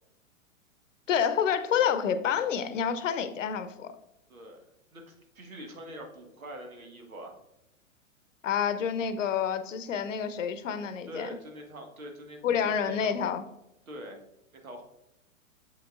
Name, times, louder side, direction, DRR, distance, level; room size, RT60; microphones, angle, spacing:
voice 1, 1.1-3.9 8.4-11.3 12.4-13.4, left 8 dB, 65° left, 11 dB, 0.8 m, -28 dB
voice 2, 4.3-4.6 4.9-7.3 9.9-10.0 11.0-12.4 12.9-13.2 13.9-14.2 14.5-14.8, equal, 80° right, 2 dB, 1.5 m, -44 dB
7.1 x 6.1 x 2.4 m, 0.87 s
figure-of-eight pair, 110°, 41 cm